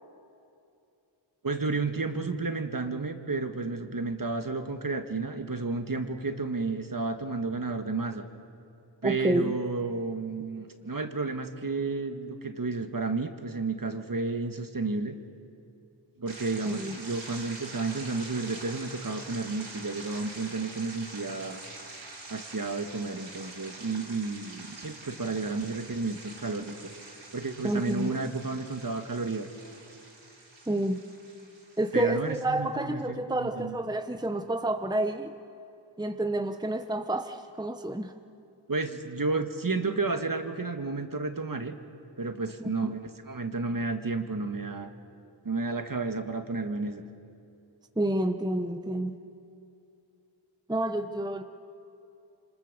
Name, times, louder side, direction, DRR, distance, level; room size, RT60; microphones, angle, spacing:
voice 1, 1.4-8.3 9.0-15.2 16.2-21.6 22.3-26.8 27.3-29.5 31.9-33.8 38.7-41.7 42.2-44.9 45.4-47.0, right 3 dB, 45° right, 7 dB, 1.8 m, -32 dB
voice 2, 9.0-9.5 16.7-17.0 27.6-28.2 30.7-31.0 31.8-35.3 36.0-38.1 42.6-42.9 48.0-49.1 50.7-51.4, right 1 dB, 10° right, 7 dB, 1.1 m, -29 dB
sound 1, 16.3-32.4, right 2 dB, 70° right, 5.6 m, -45 dB
27.5 x 25.5 x 6.9 m, 2.6 s
cardioid pair, 55°, 47 cm